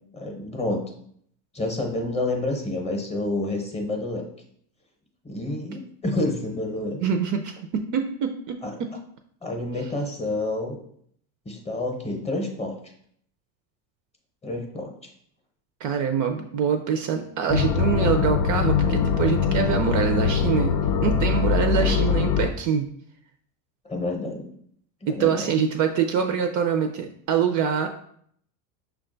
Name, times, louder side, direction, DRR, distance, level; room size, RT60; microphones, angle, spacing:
voice 1, 0.1-0.9 1.5-4.3 5.2-7.0 8.6-8.7 9.4-10.8 11.5-12.7 14.4-14.9 21.7-22.1 23.9-24.5 25.0-25.6, left 2 dB, 15° left, 2 dB, 0.7 m, -29 dB
voice 2, 7.0-8.9 15.8-20.8 21.0-22.9 25.1-27.9, right 7 dB, 45° right, 6 dB, 0.4 m, -25 dB
sound 1, 17.5-22.5, left 6 dB, 85° left, 0.7 m, -22 dB
5.8 x 2.3 x 3.8 m, 0.66 s
supercardioid pair, 120°, 45 cm